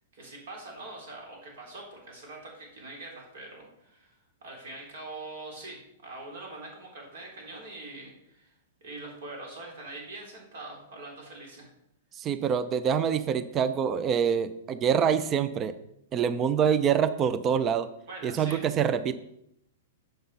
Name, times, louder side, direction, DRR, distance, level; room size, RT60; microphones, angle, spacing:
voice 1, 0.1-8.5 8.8-11.7 18.1-18.6, right 2 dB, 60° right, 0 dB, 3.7 m, -43 dB
voice 2, 12.2-15.7 16.1-17.9 18.2-19.1, right 7 dB, 30° right, 13 dB, 0.5 m, -25 dB
7.8 x 5.7 x 5.5 m, 0.78 s
hypercardioid pair, 110°, 0 cm